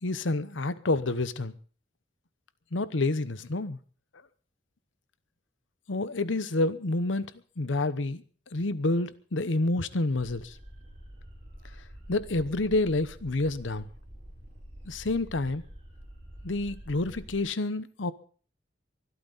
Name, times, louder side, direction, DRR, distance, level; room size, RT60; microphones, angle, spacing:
voice 1, 0.0-1.5 2.7-3.8 5.9-7.3 7.6-8.2 8.5-10.6 12.1-13.9 14.9-15.6 16.4-18.1, left 2 dB, 85° left, 0.9 m, -28 dB
sound 1, 10.2-17.4, equal, 40° right, 6.9 m, -47 dB
23.5 x 13.0 x 4.0 m
head